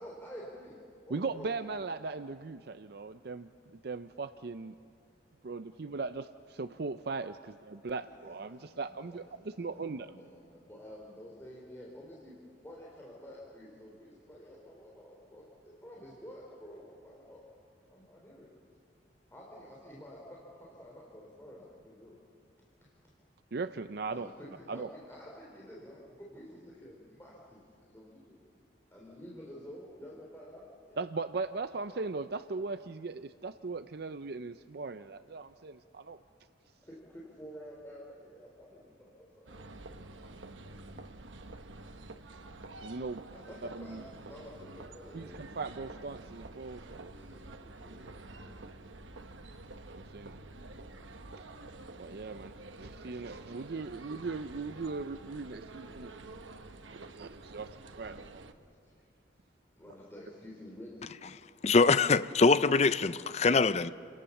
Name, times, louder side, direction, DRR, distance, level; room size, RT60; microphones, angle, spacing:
voice 1, 0.0-1.5 8.0-12.4 12.6-17.4 17.9-18.5 19.3-22.2 24.1-28.6 28.9-31.0 36.8-40.1 40.7-41.0 43.3-45.5 47.0-48.6 56.9-57.6 58.4-59.1 59.7-61.2, equal, 15° left, 3.4 m, -50 dB
voice 2, 1.1-4.7 5.4-7.4 7.7-10.1 23.5-24.3 24.7-24.9 31.0-36.2 42.8-43.2 43.7-44.0 45.1-47.1 49.9-50.4 52.0-56.1 56.9-57.7 58.0-58.5, right 4 dB, 55° right, 0.5 m, -39 dB
sound 1, 39.5-58.5, right 2 dB, 85° right, 1.2 m, -49 dB
voice 3, 61.6-63.9, left 4 dB, 35° left, 0.5 m, -24 dB
29.5 x 18.5 x 7.1 m
head